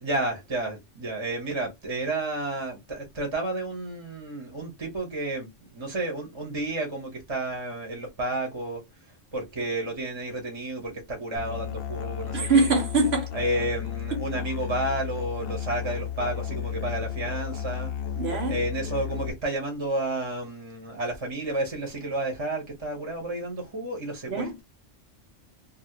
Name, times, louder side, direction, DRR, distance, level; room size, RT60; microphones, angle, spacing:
voice 1, 0.0-8.8 9.3-12.7 13.3-17.9 18.5-24.6, right 2 dB, 25° right, 1.1 m, -31 dB
Musical instrument, 11.4-19.3, left 9 dB, 60° left, 0.6 m, -33 dB
voice 2, 12.3-13.3 18.2-18.6 24.3-24.5, right 3 dB, 60° right, 1.1 m, -23 dB
2.8 x 2.7 x 2.8 m
omnidirectional pair, 1.3 m